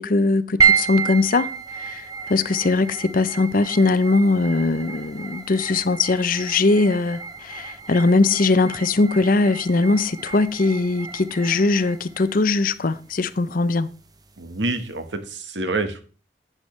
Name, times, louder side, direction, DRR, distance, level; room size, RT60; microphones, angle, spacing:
voice 1, 0.0-13.9, left 3 dB, 50° left, 0.6 m, -20 dB
sound 1, 0.6-15.1, right 6 dB, 20° right, 0.8 m, -30 dB
voice 2, 14.4-16.0, right 2 dB, 80° right, 1.4 m, -27 dB
11.5 x 8.8 x 3.2 m
head